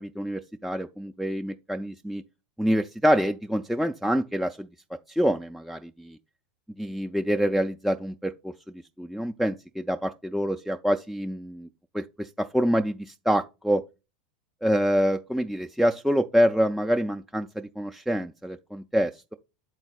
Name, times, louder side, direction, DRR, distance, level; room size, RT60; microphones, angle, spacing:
voice 1, 0.0-2.2 2.6-4.7 5.1-6.2 6.8-8.5 9.0-11.7 11.9-13.8 14.6-19.3, equal, ahead, 0.3 m, -26 dB
8.3 x 4.0 x 4.1 m
figure-of-eight pair, 85°, 4 cm